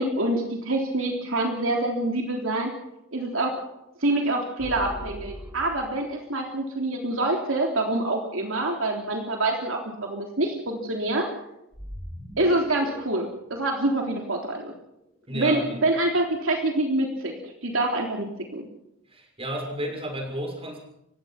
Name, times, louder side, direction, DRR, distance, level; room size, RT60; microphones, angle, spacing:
voice 1, 0.0-2.7 3.1-3.5 4.0-11.3 12.4-14.7 15.3-18.6, right 2 dB, 70° right, 1 dB, 3.5 m, -26 dB
sound 1, 4.6-6.1 11.7-14.8, equal, 10° right, 7.1 m, -40 dB
voice 2, 15.3-15.8 19.1-20.8, equal, 30° right, 2 dB, 6.6 m, -31 dB
30.0 x 16.5 x 5.9 m, 0.83 s
head